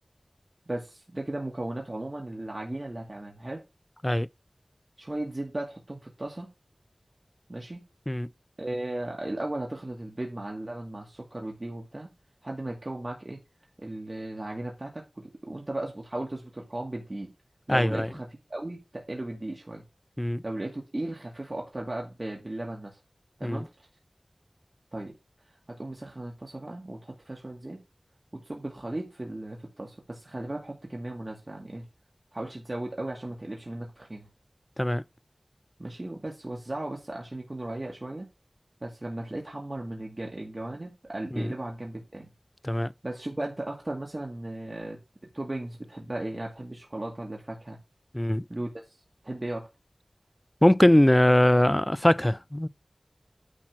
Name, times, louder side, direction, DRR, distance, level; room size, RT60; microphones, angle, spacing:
voice 1, 0.7-3.6 5.0-6.5 7.5-7.8 8.6-12.1 12.4-13.4 13.8-17.3 17.7-19.8 20.4-23.0 23.4-23.7 24.9-25.1 25.7-27.8 28.3-31.9 32.3-34.3 35.8-38.3 38.8-42.3 43.0-45.0 45.3-47.8 48.5-48.7 49.2-49.7, right 1 dB, 40° right, 2.2 m, -36 dB
voice 2, 17.7-18.1 20.2-20.4 23.4-23.6 34.8-35.0 41.3-41.5 42.6-42.9 48.1-48.4 50.6-52.7, left 1 dB, 15° left, 0.4 m, -21 dB
10.0 x 4.3 x 6.1 m
wide cardioid pair, 65°, 0 cm